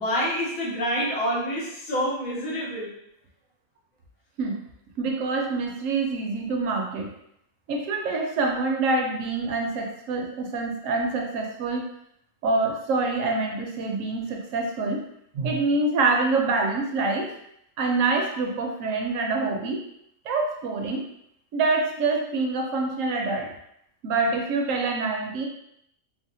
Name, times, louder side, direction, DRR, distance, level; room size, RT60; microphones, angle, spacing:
voice 1, 0.0-2.9, equal, 85° left, -5 dB, 1.3 m, -27 dB
voice 2, 5.0-7.1 7.7-11.9 12.4-15.0 15.3-17.3 17.8-19.8 20.2-21.0 21.5-23.5 24.0-25.5, right 3 dB, 75° right, 1 dB, 0.9 m, -26 dB
3.4 x 2.0 x 2.6 m, 0.76 s
omnidirectional pair, 1.4 m